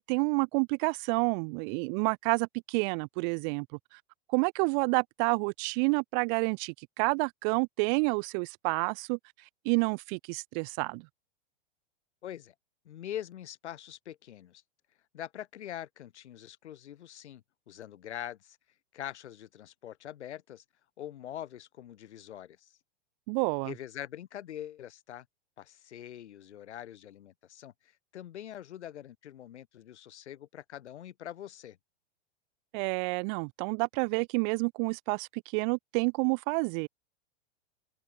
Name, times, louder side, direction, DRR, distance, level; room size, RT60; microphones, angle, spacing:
voice 1, 0.0-3.7 4.3-9.2 9.6-11.1 23.3-23.7 32.7-36.9, right 39 dB, 45° right, 2.9 m, -29 dB
voice 2, 12.2-12.5 12.8-14.6 15.1-18.6 18.9-20.6 21.0-22.8 23.6-25.3 25.6-31.8, left 11 dB, 85° left, 6.3 m, -43 dB
supercardioid pair, 145°, 33 cm